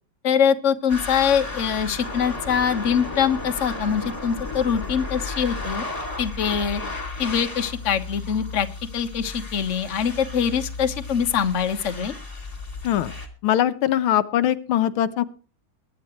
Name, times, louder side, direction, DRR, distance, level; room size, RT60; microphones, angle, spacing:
voice 1, 0.2-5.8 6.2-6.8 7.2-8.7 8.9-12.1, left 7 dB, 40° left, 7 dB, 1.3 m, -23 dB
sound 1, 0.9-13.3, left 3 dB, 15° left, 2.5 m, -34 dB
voice 2, 13.4-15.2, left 11 dB, 85° left, 11 dB, 1.7 m, -21 dB
22.5 x 9.7 x 3.1 m, 0.38 s
omnidirectional pair, 2.2 m